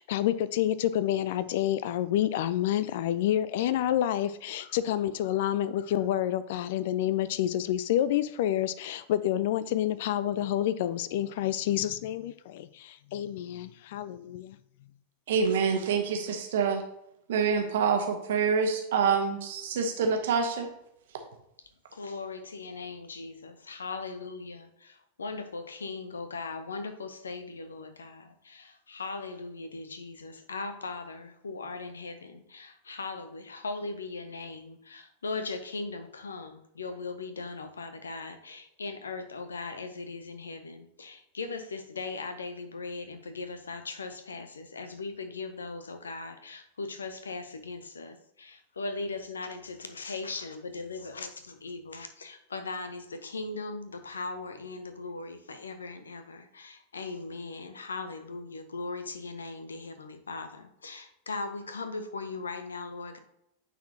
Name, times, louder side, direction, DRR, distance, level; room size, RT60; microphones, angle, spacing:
voice 1, 0.0-14.6, left 12 dB, 55° left, 15 dB, 0.3 m, -28 dB
voice 2, 15.3-16.8 17.3-20.7, right 6 dB, 60° right, 4 dB, 1.2 m, -26 dB
voice 3, 21.9-63.2, left 3 dB, 70° left, 9 dB, 0.7 m, -39 dB
9.3 x 4.2 x 2.8 m, 0.77 s
figure-of-eight pair, 90°, 0 cm